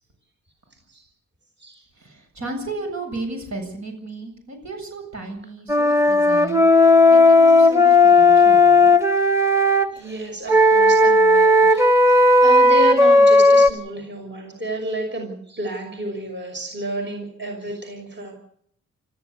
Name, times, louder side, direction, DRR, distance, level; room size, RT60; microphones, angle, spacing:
voice 1, 2.0-8.9, right 2 dB, 60° right, 3 dB, 7.8 m, -34 dB
Wind instrument woodwind instrument, 5.7-9.9 10.5-13.7, left 2 dB, 10° right, 1.7 m, -14 dB
voice 2, 9.9-18.3, right 1 dB, 35° right, 2 dB, 6.0 m, -31 dB
27.0 x 14.5 x 8.2 m, 0.66 s
cardioid pair, 85°, 31 cm